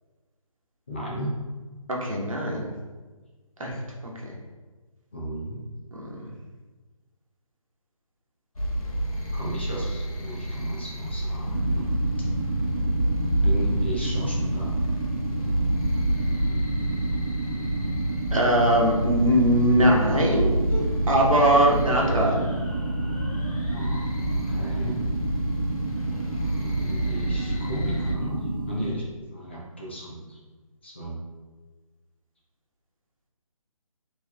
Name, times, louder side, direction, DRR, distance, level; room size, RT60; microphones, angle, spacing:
voice 1, 0.9-1.3 5.1-5.6 9.3-12.0 13.4-14.8 23.7-25.0 26.4-30.4 30.8-31.2, equal, 20° left, -5 dB, 0.4 m, -35 dB
voice 2, 1.9-2.7 3.6-4.3 5.9-6.3 18.3-22.5, right 1 dB, 65° right, -2 dB, 1.0 m, -22 dB
sound 1, 8.5-28.1, right 1 dB, 80° left, 0.8 m, -28 dB
sound 2, 11.4-28.9, right 2 dB, 35° right, 1.0 m, -31 dB
4.3 x 3.0 x 2.2 m, 1.3 s
figure-of-eight pair, 150°, 18 cm